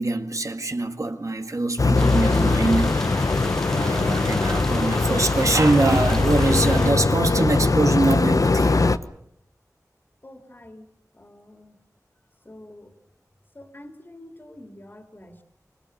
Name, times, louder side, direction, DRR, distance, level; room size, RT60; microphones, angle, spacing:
voice 1, 0.0-3.4 3.7-8.8, right 2 dB, 55° right, 1.9 m, -23 dB
sound 1, 1.8-9.0, left 3 dB, 65° left, 1.0 m, -21 dB
sound 2, 1.9-6.9, equal, 10° left, 1.2 m, -33 dB
voice 2, 10.2-10.9 11.1-11.8 12.4-12.9 13.5-15.4, left 1 dB, 35° left, 2.8 m, -46 dB
25.5 x 22.0 x 6.6 m
wide cardioid pair, 60°, 6 cm